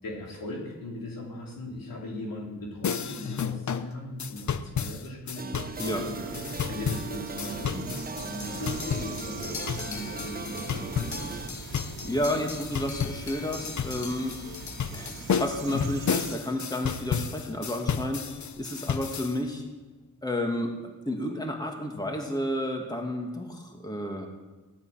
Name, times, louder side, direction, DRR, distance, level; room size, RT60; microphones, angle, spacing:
voice 1, 0.0-11.4, left 1 dB, 75° left, -2 dB, 4.3 m, -39 dB
sound 1, 2.8-19.4, left 7 dB, 55° left, 0.9 m, -33 dB
sound 2, 5.4-11.5, right 4 dB, 25° right, 0.9 m, -39 dB
sound 3, 5.7-16.3, right 4 dB, 70° right, 1.9 m, -42 dB
voice 2, 11.6-14.3 14.9-19.6 20.2-24.3, left 1 dB, 10° left, 2 dB, 2.5 m, -31 dB
17.0 x 12.0 x 6.0 m, 1.2 s
cardioid pair, 65°, 34 cm